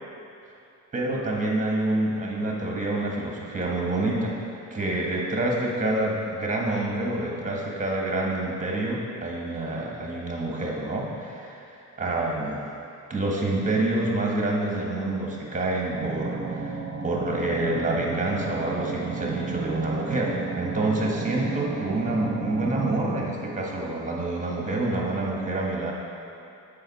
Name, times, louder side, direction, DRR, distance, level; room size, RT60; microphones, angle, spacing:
voice 1, 0.9-4.4 4.7-11.7 12.0-12.6 13.1-25.9, right 2 dB, 25° right, -2 dB, 1.5 m, -27 dB
sound 1, 15.9-23.0, right 4 dB, 50° right, 0.8 m, -33 dB
7.7 x 5.6 x 4.2 m, 2.7 s
cardioid pair, 90°, 30 cm